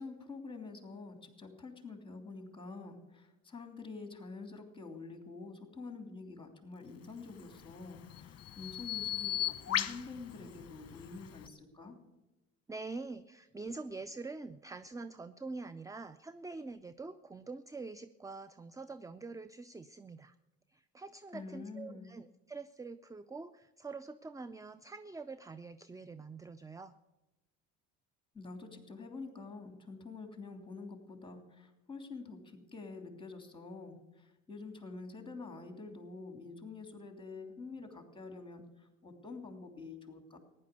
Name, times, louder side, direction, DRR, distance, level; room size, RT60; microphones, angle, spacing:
voice 1, 0.0-12.0 21.3-22.1 28.3-40.4, left 3 dB, 15° left, 5 dB, 3.1 m, -47 dB
Bird vocalization bird call bird song, 7.3-11.5, left 11 dB, 45° left, 1.0 m, -38 dB
voice 2, 12.7-20.3 20.7-26.9, right 3 dB, 10° right, 14 dB, 0.5 m, -45 dB
15.0 x 10.5 x 6.9 m, 1.0 s
hypercardioid pair, 70°, 36 cm